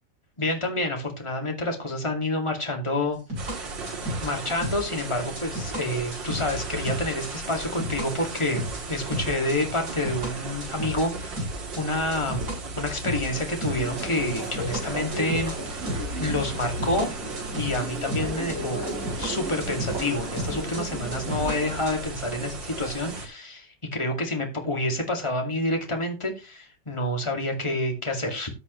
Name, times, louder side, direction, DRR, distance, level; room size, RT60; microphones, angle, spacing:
voice 1, 0.4-3.2 4.2-12.5 12.8-15.5 16.2-17.1 17.5-18.8 19.2-28.5, left 1 dB, 15° left, 2 dB, 2.3 m, -28 dB
sound 1, 3.3-8.1 8.4-11.1 11.4-12.6 12.9-14.8 15.1-17.1 17.4-20.1 20.4-22.0, equal, 65° right, 7.6 m, -33 dB
sound 2, 3.4-23.3, right 3 dB, 90° right, 2.9 m, -36 dB
sound 3, 13.8-21.8, right 1 dB, 50° right, 7.3 m, -36 dB
14.0 x 8.2 x 3.2 m, 0.28 s
omnidirectional pair, 2.0 m